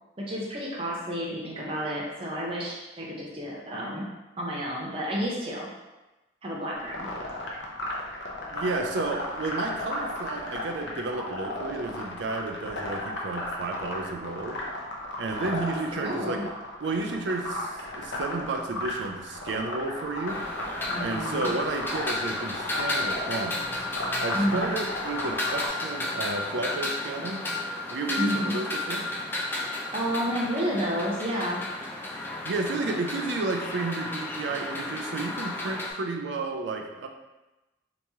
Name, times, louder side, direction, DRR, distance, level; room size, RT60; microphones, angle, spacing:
voice 1, 0.2-4.1 4.4-5.7 6.4-7.1 15.4-16.5 20.9-21.5 24.3-24.7 28.2-28.5 29.9-31.6, equal, 30° right, -4 dB, 0.7 m, -31 dB
sound 1, 6.8-25.7, left 1 dB, 70° left, 0.6 m, -35 dB
voice 2, 8.5-14.6 15.2-16.4 16.8-20.5 21.0-23.7 24.2-27.5 27.9-29.1 32.4-37.1, right 3 dB, 70° right, 4 dB, 0.4 m, -32 dB
sound 2, 20.3-35.9, left 2 dB, 10° left, 0.3 m, -33 dB
2.9 x 2.8 x 3.4 m, 1.0 s
head